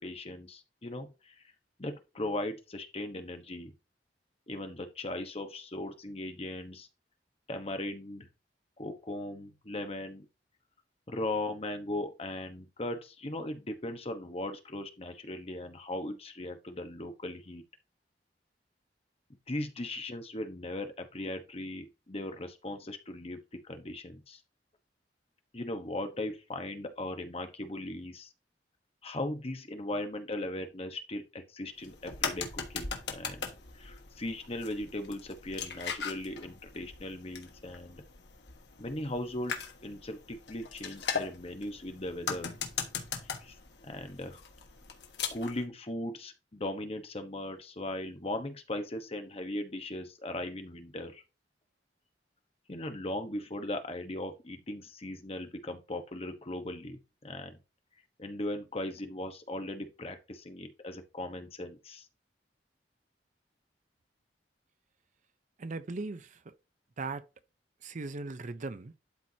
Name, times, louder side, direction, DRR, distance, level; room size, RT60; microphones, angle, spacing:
voice 1, 0.0-1.3 1.8-3.7 4.5-6.9 7.5-8.3 8.8-10.3 11.1-17.6 19.5-24.4 25.5-28.3 29.0-33.4 33.7-38.0 38.8-42.5 43.4-43.5 43.8-44.4 45.3-51.2 52.7-57.6 58.2-62.1, left 1 dB, 35° left, 1.1 m, -38 dB
sound 1, 31.8-45.6, left 6 dB, 70° left, 1.4 m, -40 dB
voice 2, 65.6-66.5 67.0-67.2 67.8-68.9, right 3 dB, 45° right, 0.6 m, -38 dB
12.0 x 4.6 x 2.8 m
head